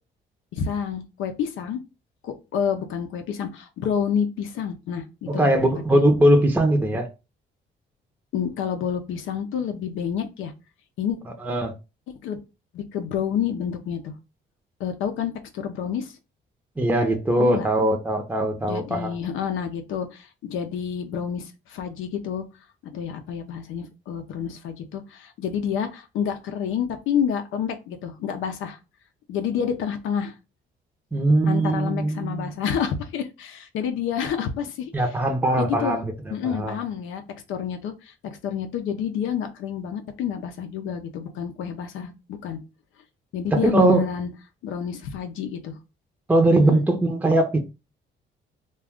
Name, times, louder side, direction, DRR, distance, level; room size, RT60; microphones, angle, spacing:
voice 1, 0.5-1.8 2.2-5.5 5.9-6.0 8.3-10.5 11.0-11.2 12.1-12.4 12.7-14.1 14.8-16.1 17.4-17.7 18.6-22.4 22.8-28.8 29.3-30.3 31.5-34.9 35.6-36.0 36.3-37.2 37.5-42.6 43.3-44.3 44.6-45.8 46.5-46.8, left 8 dB, 80° left, 0.5 m, -29 dB
voice 2, 5.3-7.1 11.4-11.7 16.8-19.1 31.1-32.5 34.9-36.8 43.5-44.1 46.3-47.6, right 1 dB, 10° right, 0.6 m, -20 dB
2.4 x 2.3 x 3.5 m
cardioid pair, 90°, 20 cm